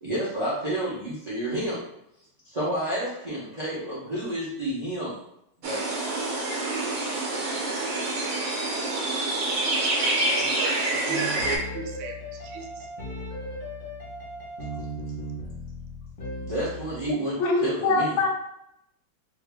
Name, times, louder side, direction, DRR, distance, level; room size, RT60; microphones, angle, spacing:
voice 1, 0.0-1.8 2.5-5.2 5.6-5.9 16.4-17.4 17.6-18.1, right 1 dB, 45° right, -9 dB, 0.5 m, -30 dB
sound 1, 5.6-11.6, right 2 dB, 60° right, 1.0 m, -27 dB
voice 2, 10.1-12.9 16.7-16.8, right 5 dB, 80° right, 3 dB, 1.4 m, -38 dB
sound 2, 11.1-17.1, equal, 35° left, 0.9 m, -37 dB
voice 3, 17.1-18.3, left 3 dB, 75° left, 2 dB, 1.2 m, -24 dB
2.8 x 2.7 x 3.4 m, 0.78 s
omnidirectional pair, 2.1 m